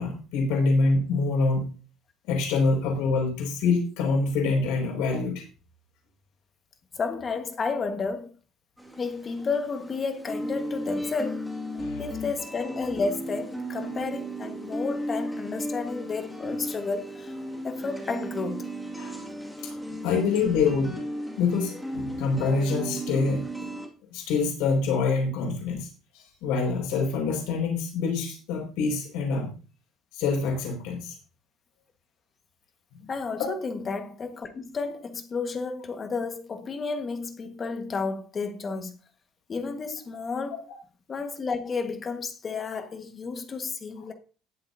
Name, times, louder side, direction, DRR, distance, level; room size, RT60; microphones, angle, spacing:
voice 1, 0.0-1.7 2.3-5.4 11.8-12.0 19.0-19.2 20.0-21.0 21.4-23.7 24.1-25.9 26.1-29.5 30.1-31.2 33.4-33.5, left 4 dB, 90° left, 5.7 m, -26 dB
voice 2, 6.9-8.3 9.0-11.4 12.0-17.3 17.6-18.7 19.9-20.0 33.1-38.9 39.5-40.7 41.1-44.1, left 4 dB, 30° left, 1.6 m, -32 dB
sound 1, 8.8-23.9, right 1 dB, ahead, 2.3 m, -35 dB
19.5 x 7.7 x 2.8 m
cardioid pair, 140°, 0 cm